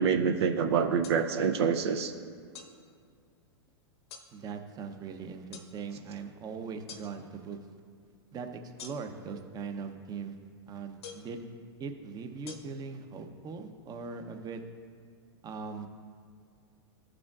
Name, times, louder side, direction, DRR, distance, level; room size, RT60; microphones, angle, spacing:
voice 1, 0.0-2.1, right 6 dB, 70° right, 5 dB, 0.5 m, -26 dB
sound 1, 1.0-1.2 2.5-2.7 4.1-4.3 5.5-5.7 6.9-7.1 8.8-9.2 11.0-11.3 12.5-12.6, left 6 dB, 70° left, 1.0 m, -45 dB
voice 2, 4.3-7.6 8.3-8.5 8.8-10.3 10.7-11.5 11.8-14.6 15.4-15.9, right 5 dB, 25° right, 6 dB, 0.7 m, -40 dB
13.5 x 4.9 x 2.4 m, 2.1 s
hypercardioid pair, 110°, 14 cm